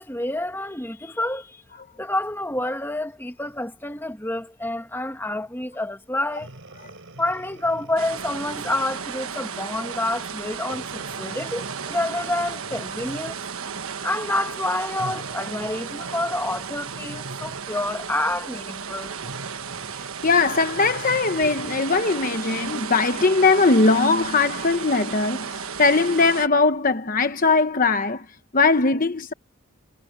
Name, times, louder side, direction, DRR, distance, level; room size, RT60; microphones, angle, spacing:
voice 1, 0.0-1.6 2.0-6.5 7.2-13.3 14.0-19.1, left 1 dB, 10° left, 1.7 m, -28 dB
Breathing, 6.3-8.9 9.5-9.8 10.6-13.5 14.9-17.8 19.2-21.9 22.5-22.6, right 1 dB, 60° right, 5.2 m, -43 dB
sound 1, 8.0-26.5, right 6 dB, 75° right, 1.2 m, -34 dB
voice 2, 20.2-28.2 28.5-29.3, left 3 dB, 40° left, 1.0 m, -20 dB
head